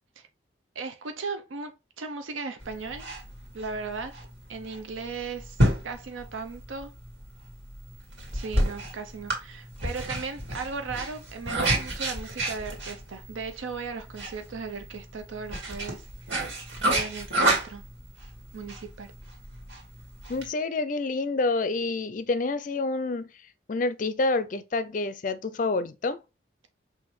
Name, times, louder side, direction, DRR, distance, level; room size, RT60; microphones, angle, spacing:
voice 1, 0.8-3.1 3.5-4.1 4.5-5.6 5.8-6.9 8.3-16.1 16.8-17.8 18.5-19.1, right 4 dB, 85° right, 0.6 m, -37 dB
sound 1, 2.6-20.5, right 1 dB, 65° right, 1.9 m, -30 dB
voice 2, 20.3-23.3 23.7-26.2, left 3 dB, 40° left, 0.4 m, -28 dB
6.1 x 2.5 x 3.1 m
head